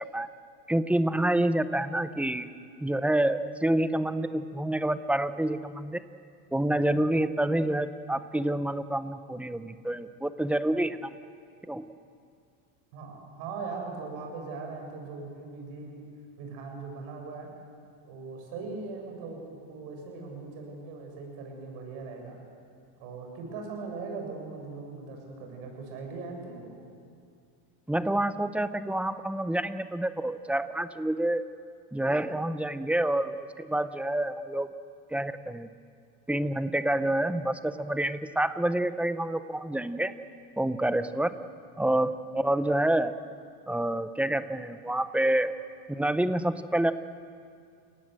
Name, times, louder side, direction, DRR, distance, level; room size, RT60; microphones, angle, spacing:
voice 1, 0.7-2.5 2.8-6.0 6.5-11.1 11.7-11.9 27.9-31.4 31.9-34.7 35.1-35.7 36.3-40.1 40.6-41.3 41.8-43.2 43.7-45.5 45.9-46.9, right 1 dB, 5° right, 12 dB, 0.7 m, -28 dB
voice 2, 12.9-16.0 16.4-17.5 18.1-22.4 23.0-26.8, right 4 dB, 75° right, 2 dB, 7.0 m, -40 dB
29.5 x 18.5 x 7.7 m, 2.3 s
supercardioid pair, 135°, 44 cm